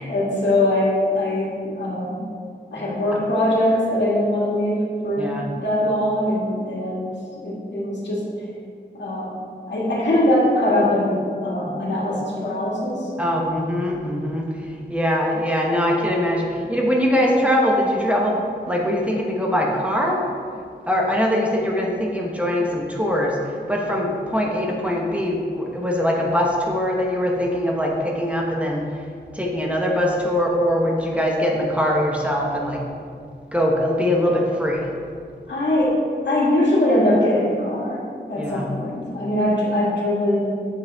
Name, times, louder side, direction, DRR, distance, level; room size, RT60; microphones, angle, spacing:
voice 1, 0.0-2.2 2.7-8.3 8.9-9.3 9.7-13.1 35.5-40.6, left 1 dB, 80° left, -5 dB, 2.1 m, -22 dB
voice 2, 5.2-5.5 13.2-14.5 14.9-20.2 20.9-23.4 23.7-28.9 29.3-32.8 33.5-34.9 38.4-38.7, equal, 5° right, -2 dB, 1.1 m, -22 dB
8.2 x 7.7 x 3.5 m, 2.2 s
wide cardioid pair, 125°, 18 cm